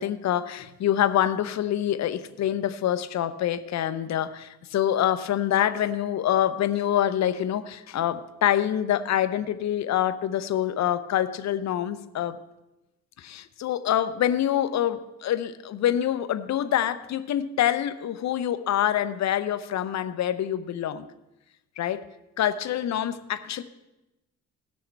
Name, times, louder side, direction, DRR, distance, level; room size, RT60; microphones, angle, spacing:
voice 1, 0.0-12.4 13.2-21.0 21.8-22.1 22.4-23.6, left 11 dB, 65° left, 11 dB, 0.8 m, -26 dB
17.5 x 6.4 x 4.6 m, 0.96 s
cardioid pair, 90°, 30 cm